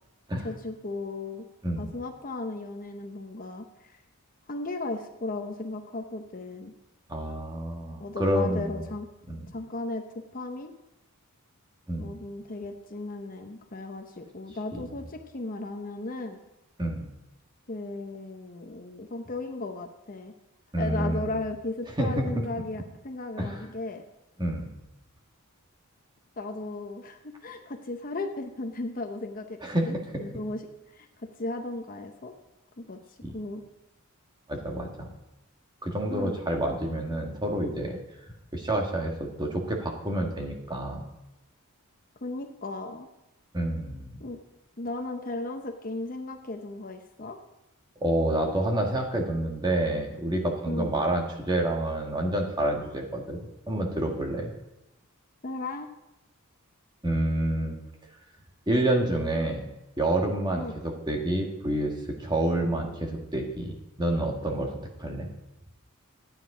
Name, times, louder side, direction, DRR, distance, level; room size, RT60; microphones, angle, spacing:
voice 1, 0.4-1.4 1.8-4.0 4.5-6.7 8.0-9.1 9.5-10.1 10.3-10.7 12.0-16.4 17.7-20.3 20.8-24.0 26.4-29.6 29.9-30.6 30.9-32.3 32.8-33.0 33.3-33.6 36.1-36.4 42.2-43.1 44.2-44.4 44.8-47.4 50.7-50.9 55.4-55.9 60.6-60.8, left 2 dB, 40° left, 5 dB, 0.8 m, -36 dB
voice 2, 7.1-8.8 9.3-9.4 11.9-12.2 14.7-14.8 16.8-17.1 20.7-21.3 22.0-22.4 23.4-23.6 24.4-24.7 29.6-29.9 33.2-33.4 34.5-35.1 35.8-38.0 38.5-41.0 43.5-44.2 48.0-53.4 53.7-54.5 57.0-57.7 58.7-59.7 60.0-65.3, right 1 dB, 20° right, 1 dB, 1.6 m, -28 dB
13.0 x 9.1 x 4.9 m, 0.92 s
head